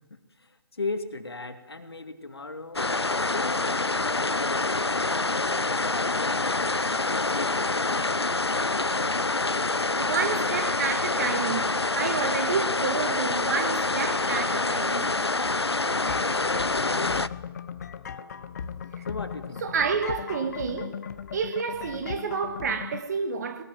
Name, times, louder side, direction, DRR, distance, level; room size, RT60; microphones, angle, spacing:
voice 1, 0.0-2.9 3.3-8.9 15.6-17.1 19.0-19.7, left 3 dB, 70° left, 2.5 m, -38 dB
sound 1, 2.8-17.3, left 3 dB, 90° left, 0.7 m, -26 dB
voice 2, 10.0-15.1 19.6-21.0 21.3-23.6, right 5 dB, 40° right, 2.1 m, -29 dB
sound 2, 16.1-23.0, left 7 dB, 40° left, 1.1 m, -38 dB
21.0 x 18.5 x 7.7 m
figure-of-eight pair, 140°, 13 cm